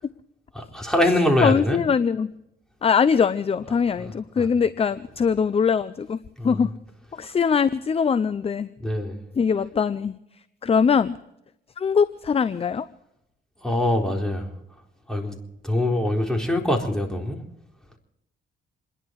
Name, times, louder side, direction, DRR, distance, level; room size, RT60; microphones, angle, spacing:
voice 1, 0.5-1.8 4.0-4.5 6.4-6.7 8.8-9.2 13.6-14.5 15.1-15.4 15.6-17.4, left 1 dB, 5° left, 1 dB, 4.1 m, -24 dB
voice 2, 1.4-2.3 2.8-6.2 6.4-6.7 7.1-8.7 9.4-10.1 10.6-11.2 11.8-12.8, left 6 dB, 30° left, 15 dB, 0.6 m, -22 dB
28.0 x 11.0 x 4.7 m, 0.82 s
cardioid pair, 90°, 20 cm